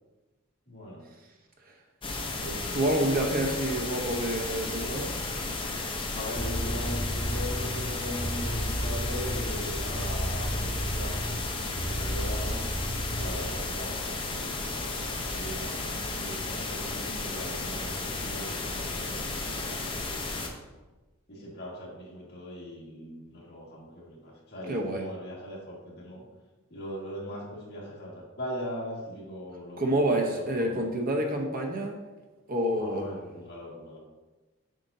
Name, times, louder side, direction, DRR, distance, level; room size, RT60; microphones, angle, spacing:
voice 1, 0.7-1.0 2.4-2.8 6.1-11.2 11.7-12.6 13.1-20.0 21.3-26.2 26.7-30.9 32.8-34.0, equal, 50° left, -4 dB, 1.8 m, -40 dB
sound 1, 2.0-20.5, left 3 dB, 25° left, 0.7 m, -34 dB
voice 2, 2.7-5.2 24.7-25.0 29.8-32.0 32.5-33.1, right 1 dB, 45° right, 1 dB, 0.8 m, -28 dB
sound 2, 6.3-13.6, equal, 70° left, 1.2 m, -33 dB
7.5 x 5.1 x 2.7 m, 1.2 s
head